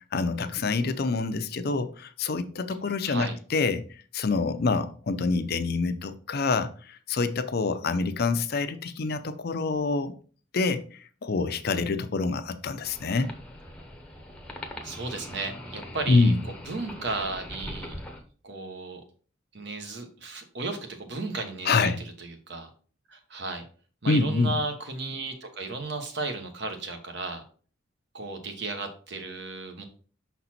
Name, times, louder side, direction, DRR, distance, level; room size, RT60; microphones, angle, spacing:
voice 1, 0.1-3.8 4.1-10.1 10.5-13.3 16.1-16.4 21.7-22.0 24.1-24.5, left 3 dB, 50° left, 0.5 m, -26 dB
voice 2, 3.0-3.4 7.8-8.0 14.8-17.9 18.4-19.0 19.5-21.9 22.2-22.7 23.1-23.6 24.0-27.4 28.1-29.8, right 3 dB, 60° right, 1.1 m, -34 dB
sound 1, 12.8-18.2, left 1 dB, 5° left, 0.8 m, -41 dB
5.9 x 4.1 x 4.3 m
head